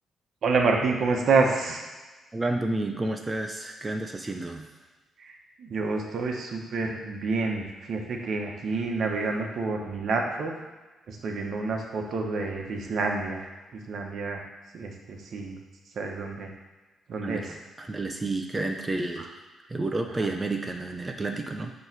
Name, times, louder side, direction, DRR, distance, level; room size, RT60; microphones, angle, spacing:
voice 1, 0.4-1.8 5.2-10.5 11.1-14.4 14.7-15.6 15.9-16.5 17.1-17.6 19.2-19.3 20.2-20.3, right 4 dB, 60° right, 1 dB, 1.1 m, -28 dB
voice 2, 2.3-4.7 17.2-19.4 19.7-21.7, right 2 dB, 20° right, 3 dB, 0.6 m, -30 dB
8.5 x 3.2 x 6.0 m, 1.2 s
cardioid pair, 120°, 0 cm